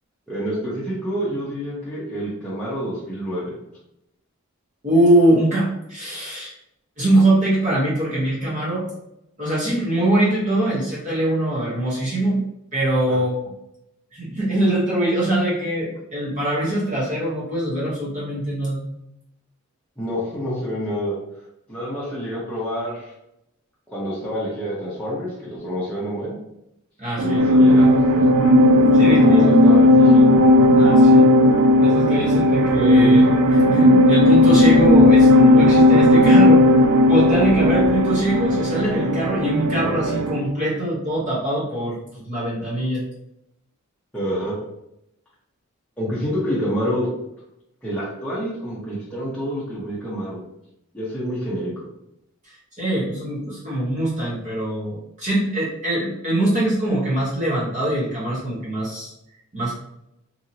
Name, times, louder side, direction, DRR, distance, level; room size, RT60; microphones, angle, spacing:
voice 1, 0.3-3.5 13.1-13.2 20.0-21.1 21.7-23.1 23.9-26.4 27.2-28.2 29.0-30.4 44.1-44.6 46.0-47.1 47.8-50.4 50.9-51.7, equal, 5° left, -9 dB, 0.7 m, -28 dB
voice 2, 4.8-6.5 7.0-8.9 9.4-12.4 12.7-13.5 14.1-18.8 27.0-27.4 28.9-29.5 30.8-31.2 31.8-36.7 37.0-43.1 52.5-59.1 59.5-59.7, right 1 dB, 35° right, -7 dB, 0.9 m, -22 dB
sound 1, 27.2-40.5, left 1 dB, 75° right, 0.3 m, -14 dB
2.8 x 2.7 x 2.6 m, 0.82 s
head